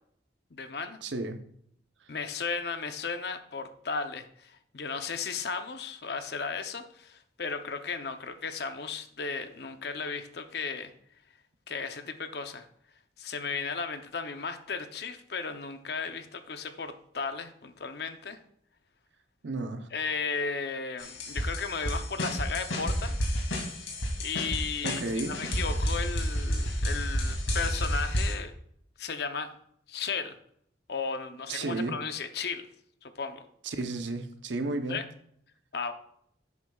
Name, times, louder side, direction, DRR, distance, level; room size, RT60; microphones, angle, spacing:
voice 1, 0.5-1.0 2.1-10.9 11.7-12.7 13.2-18.4 19.9-23.2 24.2-28.5 29.0-29.5 29.9-30.4 30.9-32.7 33.0-33.4 34.9-35.0 35.7-35.9, left 5 dB, 60° left, 0.7 m, -35 dB
voice 2, 1.0-1.4 2.0-2.1 19.4-19.9 24.8-25.4 31.5-32.0 33.6-35.0, right 2 dB, 75° right, 0.8 m, -33 dB
sound 1, 21.0-28.3, equal, 90° left, 2.3 m, -30 dB
10.5 x 8.4 x 2.3 m
head